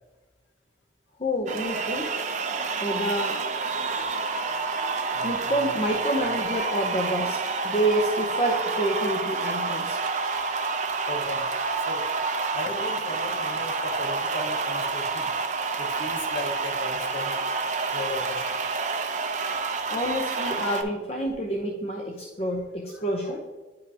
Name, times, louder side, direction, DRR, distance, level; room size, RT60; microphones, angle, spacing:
voice 1, 1.2-2.1 2.8-3.4 5.2-7.4 7.6-10.0 19.9-23.4, right 1 dB, 35° left, 0 dB, 0.6 m, -28 dB
sound 1, 1.5-20.8, right 4 dB, 40° right, 0.6 m, -28 dB
voice 2, 5.1-5.7 10.5-10.6 11.1-11.5 11.8-12.1 12.5-15.3 15.8-17.3 17.9-18.8 22.9-23.2, left 1 dB, 80° left, 2 dB, 1.3 m, -37 dB
9.3 x 5.3 x 2.7 m, 1.3 s
head